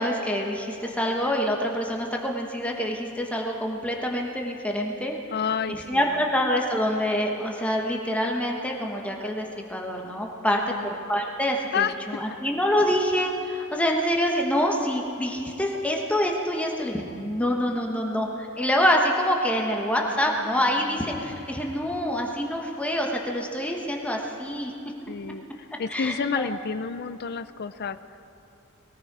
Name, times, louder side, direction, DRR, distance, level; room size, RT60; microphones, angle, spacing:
voice 1, 0.0-5.2 5.7-24.7 25.9-26.5, equal, 5° left, 0 dB, 1.2 m, -26 dB
voice 2, 5.3-6.2 10.5-10.9 11.7-11.9 19.9-21.2 25.1-28.0, left 6 dB, 50° left, 12 dB, 0.5 m, -31 dB
21.0 x 14.0 x 4.8 m, 2.9 s
head